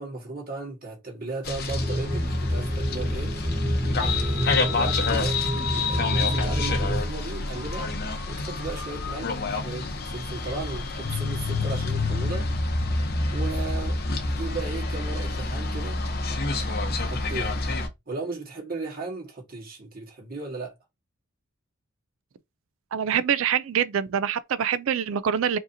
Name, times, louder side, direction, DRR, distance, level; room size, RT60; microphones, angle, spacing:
voice 1, 0.0-3.3 4.0-5.4 5.8-7.9 8.3-12.5 13.3-14.0 14.2-16.0 17.0-17.6 18.1-20.7, right 3 dB, 45° right, 1.7 m, -36 dB
sound 1, 1.4-17.9, left 2 dB, 45° left, 0.7 m, -30 dB
sound 2, 1.7-7.1, equal, 25° right, 0.9 m, -27 dB
sound 3, 4.0-14.6, left 4 dB, 90° left, 0.9 m, -31 dB
voice 2, 22.9-25.6, right 8 dB, 70° right, 0.3 m, -25 dB
4.8 x 2.8 x 2.6 m
head